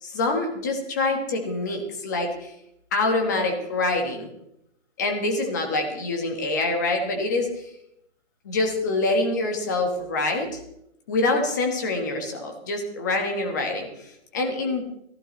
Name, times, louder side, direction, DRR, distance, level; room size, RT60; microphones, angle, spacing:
voice 1, 0.0-2.5 2.9-4.3 5.0-7.7 8.4-10.6 11.1-14.8, left 2 dB, 15° left, 3 dB, 1.2 m, -25 dB
18.0 x 15.0 x 3.1 m, 0.79 s
hypercardioid pair, 175°, 34 cm